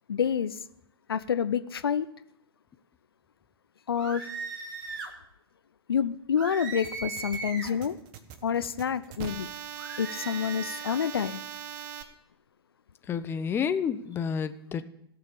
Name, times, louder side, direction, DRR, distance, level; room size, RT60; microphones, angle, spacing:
voice 1, 0.1-0.5 1.1-2.1 3.9-4.2 5.9-8.0 8.4-9.5 10.0-11.4, left 7 dB, 70° left, 14 dB, 0.6 m, -28 dB
sound 1, 3.9-5.1 6.4-7.8 9.8-11.0, right 4 dB, 55° right, 2.2 m, -38 dB
sound 2, 6.8-12.0, right 9 dB, 35° right, 1.2 m, -41 dB
voice 2, 13.1-14.8, left 7 dB, 15° left, 11 dB, 0.7 m, -29 dB
16.0 x 6.8 x 8.4 m, 0.76 s
figure-of-eight pair, 100°, 13 cm